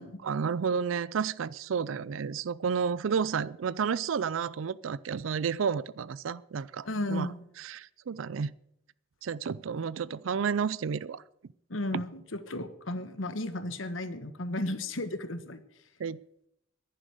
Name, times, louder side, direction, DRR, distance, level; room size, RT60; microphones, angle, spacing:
voice 1, 0.2-7.3 7.6-8.5 9.2-11.2 11.9-12.0 16.0-16.2, right 6 dB, 85° right, 0.4 m, -31 dB
voice 2, 6.8-7.4 11.7-15.6, left 1 dB, 85° left, 1.2 m, -34 dB
11.0 x 10.0 x 8.1 m
head